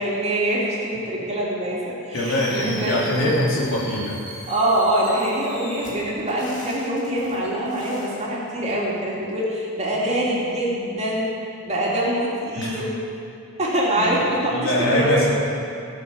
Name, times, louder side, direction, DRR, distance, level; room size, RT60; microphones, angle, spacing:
voice 1, 0.0-3.4 4.5-11.3 11.6-12.9 13.6-15.3, right 1 dB, 30° right, -5 dB, 2.9 m, -24 dB
voice 2, 2.1-4.2 12.5-12.8 14.0-14.1 14.5-15.3, left 1 dB, 65° left, -5 dB, 3.2 m, -23 dB
Fireworks, 2.1-8.2, left 1 dB, 35° left, 3.1 m, -39 dB
17.0 x 7.1 x 7.3 m, 2.6 s
head